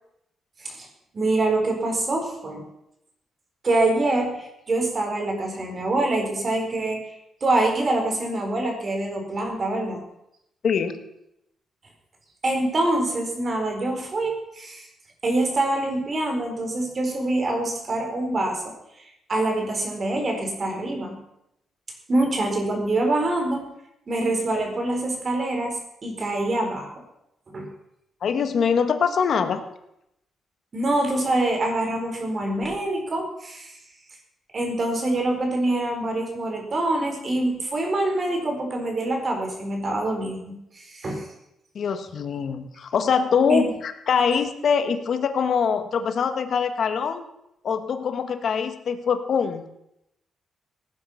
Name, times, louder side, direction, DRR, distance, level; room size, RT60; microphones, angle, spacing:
voice 1, 1.1-2.6 3.6-10.0 12.4-14.9 15.2-21.2 22.1-23.7 24.1-27.0 27.5-27.7 30.7-33.8 34.5-41.3 43.5-43.6, right 2 dB, 40° right, 2 dB, 4.6 m, -25 dB
voice 2, 10.6-11.0 28.2-29.6 41.7-47.2 47.6-49.6, left 6 dB, 60° left, 9 dB, 1.6 m, -23 dB
17.5 x 9.5 x 5.8 m, 0.82 s
cardioid pair, 95°, 0 cm